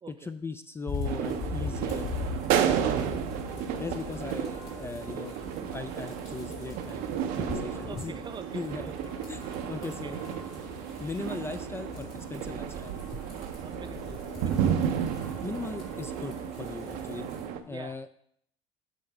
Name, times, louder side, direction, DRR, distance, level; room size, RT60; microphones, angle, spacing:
voice 1, 0.1-2.2 2.5-3.1 3.8-5.4 5.7-7.0 7.4-8.1 8.5-8.9 9.3-10.2 11.0-13.2 15.4-17.3 17.7-18.1, left 4 dB, 15° left, 10 dB, 0.3 m, -38 dB
sound 1, 0.9-17.4, left 4 dB, 75° left, 2.1 m, -42 dB
sound 2, 1.0-17.6, right 9 dB, 65° right, 0.6 m, -32 dB
sound 3, 1.6-17.2, left 2 dB, 50° left, 1.9 m, -51 dB
voice 2, 7.7-8.9 9.4-10.1 13.5-15.0 17.7-18.2, right 5 dB, 30° right, 10 dB, 0.6 m, -46 dB
7.6 x 3.9 x 4.7 m, 0.67 s
hypercardioid pair, 65°, 16 cm